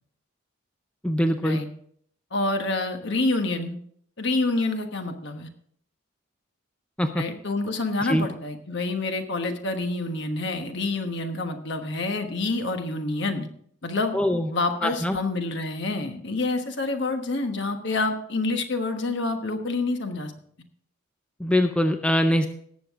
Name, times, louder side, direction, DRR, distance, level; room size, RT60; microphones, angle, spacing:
voice 1, 1.0-1.6 7.0-7.2 8.0-8.3 14.1-14.5 14.8-15.2 21.4-22.5, equal, 5° left, 6 dB, 0.5 m, -23 dB
voice 2, 2.3-3.7 4.2-5.5 7.1-13.5 13.8-14.1 14.5-20.3, left 2 dB, 55° left, 6 dB, 1.2 m, -27 dB
18.0 x 7.5 x 3.6 m, 0.64 s
head